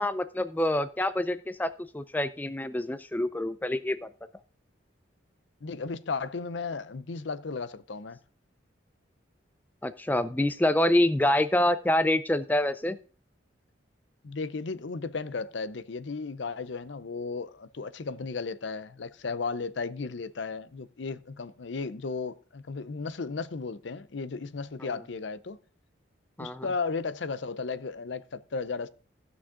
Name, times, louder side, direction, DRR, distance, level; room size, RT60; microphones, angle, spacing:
voice 1, 0.0-4.1 9.8-13.0 24.8-24.9 26.4-26.7, left 1 dB, 10° left, 0.4 m, -26 dB
voice 2, 5.6-8.2 14.2-25.6 26.4-28.9, left 4 dB, 70° left, 0.6 m, -35 dB
15.5 x 6.2 x 3.7 m
head